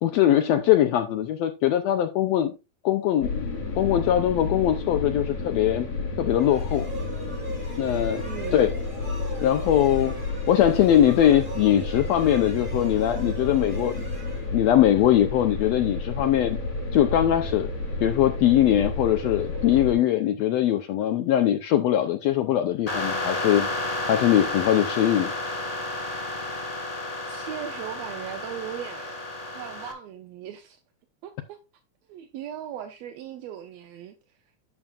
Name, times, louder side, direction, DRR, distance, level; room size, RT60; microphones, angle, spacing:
voice 1, 0.0-2.5 2.8-3.3 3.8-5.9 6.2-6.9 7.8-8.2 8.5-8.7 9.4-10.1 10.5-14.1 14.5-16.6 16.9-17.7 18.0-23.7 24.1-25.3, left 11 dB, 80° left, 1.5 m, -21 dB
sound 1, 3.2-19.9, left 3 dB, 60° left, 4.8 m, -31 dB
sound 2, 6.3-15.1, right 3 dB, 20° right, 1.4 m, -42 dB
voice 2, 8.2-8.7 27.3-30.8 31.2-31.6 32.1-34.4, right 10 dB, 75° right, 1.7 m, -38 dB
sound 3, 22.9-29.9, left 2 dB, 35° left, 0.5 m, -31 dB
10.5 x 7.1 x 2.4 m
omnidirectional pair, 3.6 m